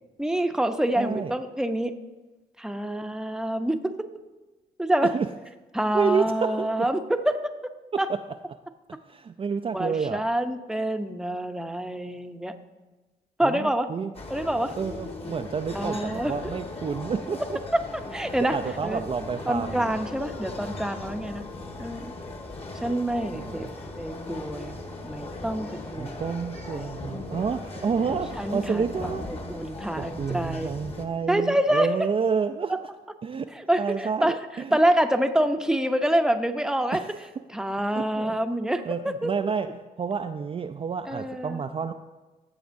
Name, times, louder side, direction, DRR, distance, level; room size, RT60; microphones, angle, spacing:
voice 1, 0.2-2.0 2.6-4.1 4.8-5.2 5.7-7.7 8.0-8.1 9.7-12.6 13.4-13.9 14.3-14.8 15.7-16.6 17.7-19.0 19.5-21.4 21.8-22.1 22.8-23.7 24.0-24.8 25.0-26.2 26.7-26.9 28.3-30.7 31.3-32.0 32.7-32.8 33.5-34.4 34.7-37.0 37.5-39.3 41.0-41.6, right 1 dB, 5° right, 7 dB, 0.7 m, -27 dB
voice 2, 1.0-1.3 5.0-5.3 5.9-6.9 7.9-8.2 8.9-10.3 13.4-14.1 14.8-17.6 18.4-20.0 23.3-23.7 26.0-29.3 30.0-32.9 33.2-33.5 33.8-34.8 36.9-37.1 37.9-38.4 38.9-41.9, right 6 dB, 30° right, 6 dB, 0.4 m, -29 dB
sound 1, 14.1-31.1, left 2 dB, 35° left, 1.4 m, -38 dB
14.5 x 7.1 x 2.6 m, 1.2 s
supercardioid pair, 60°, 18 cm